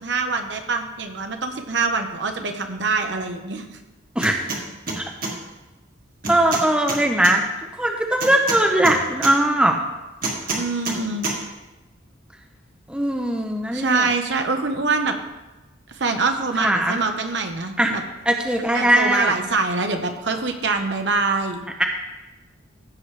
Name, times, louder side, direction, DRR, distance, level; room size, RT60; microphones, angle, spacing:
voice 1, 0.0-3.8 10.5-11.2 13.7-15.1 15.9-18.0 18.7-21.6, right 3 dB, 60° right, 5 dB, 1.0 m, -24 dB
sound 1, 4.2-4.6 4.9-5.3 6.2-7.3 8.2-9.3 10.2-11.0 11.2-11.4, right 3 dB, 45° right, 1.8 m, -27 dB
voice 2, 6.3-7.4 7.8-9.8 12.9-14.1 16.6-17.0 17.8-17.9 18.3-19.3 21.6-21.8, right 1 dB, 5° right, 2 dB, 0.7 m, -20 dB
15.5 x 6.5 x 3.3 m, 1.1 s
head